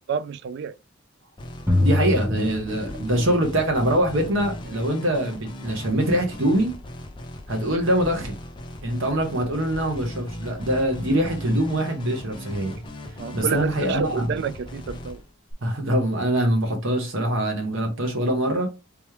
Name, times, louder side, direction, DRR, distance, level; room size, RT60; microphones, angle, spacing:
voice 1, 0.1-0.7 13.2-15.2, right 6 dB, 55° right, 0.3 m, -29 dB
sound 1, 1.4-15.5, left 1 dB, 25° left, 0.5 m, -38 dB
sound 2, 1.7-3.5, left 1 dB, 10° right, 0.9 m, -24 dB
voice 2, 1.8-6.7 7.5-8.3 8.8-12.8 13.3-14.3 15.6-18.7, right 1 dB, 70° right, 1.0 m, -23 dB
3.5 x 3.0 x 3.2 m
head